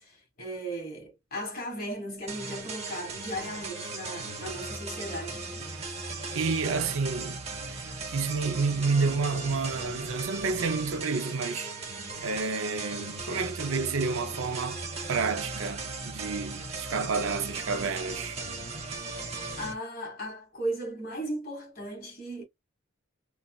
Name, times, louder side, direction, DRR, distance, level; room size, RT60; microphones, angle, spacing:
voice 1, 0.0-5.5 19.6-22.4, right 1 dB, 45° left, 1.7 m, -36 dB
sound 1, 2.3-19.7, right 3 dB, 30° right, 0.8 m, -37 dB
voice 2, 6.3-7.4 7.7-7.8 8.1-11.7 12.2-18.4, right 4 dB, 75° right, 0.6 m, -30 dB
4.0 x 2.3 x 2.3 m
head